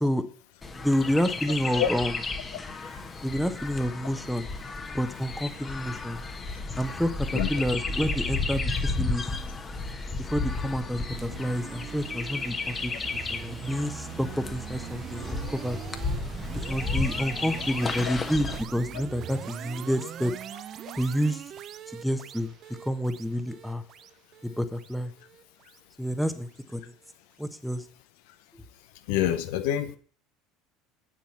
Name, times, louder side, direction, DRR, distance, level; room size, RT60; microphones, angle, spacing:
Chirp tweet, 0.6-18.6, left 3 dB, 25° left, 1.4 m, -33 dB
voice 1, 0.7-2.2 3.2-4.5 4.9-6.2 6.8-9.3 10.2-12.9 13.3-15.8 16.7-20.3 20.9-21.4 21.9-22.5 22.8-23.8 24.4-25.1 26.0-26.9 27.4-27.8, equal, ahead, 9 dB, 1.2 m, -29 dB
sound 1, 11.1-26.3, right 10 dB, 45° right, 0.5 m, -41 dB
voice 2, 29.1-30.0, left 11 dB, 65° left, 10 dB, 0.8 m, -26 dB
8.9 x 7.4 x 5.8 m, 0.43 s
figure-of-eight pair, 65°, 0 cm